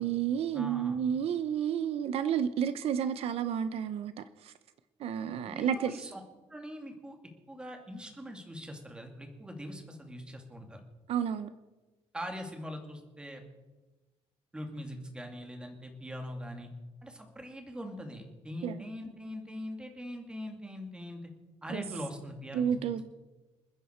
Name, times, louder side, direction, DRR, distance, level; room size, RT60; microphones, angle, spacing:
voice 1, 0.0-4.5 5.0-6.0 11.1-11.5 18.6-18.8 21.7-21.8 22.5-23.0, right 8 dB, 65° right, 12 dB, 0.7 m, -31 dB
voice 2, 0.5-1.0 5.4-6.2 6.5-7.2 7.5-10.8 12.1-13.4 14.5-16.7 17.0-21.2 21.6-22.8, equal, 10° right, 3 dB, 2.3 m, -42 dB
28.0 x 10.0 x 4.4 m, 1.2 s
cardioid pair, 175°, 11 cm